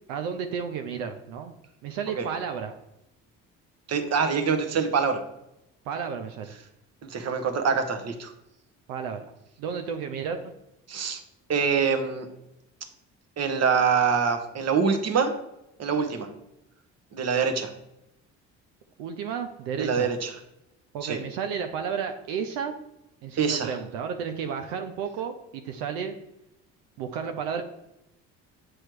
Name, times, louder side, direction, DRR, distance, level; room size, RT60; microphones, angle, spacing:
voice 1, 0.1-1.5 1.8-2.7 5.9-6.5 8.9-9.3 9.6-10.4 19.0-20.1 20.9-22.7 23.2-26.2 27.0-27.6, right 7 dB, 85° right, 6 dB, 0.6 m, -32 dB
voice 2, 3.9-5.2 7.0-8.3 10.9-11.2 11.5-12.3 13.4-15.3 15.8-16.3 17.1-17.7 19.8-20.3 21.0-21.2 23.4-23.7, right 6 dB, 50° right, 7 dB, 1.1 m, -25 dB
7.7 x 3.1 x 4.6 m, 0.87 s
supercardioid pair, 70°, 34 cm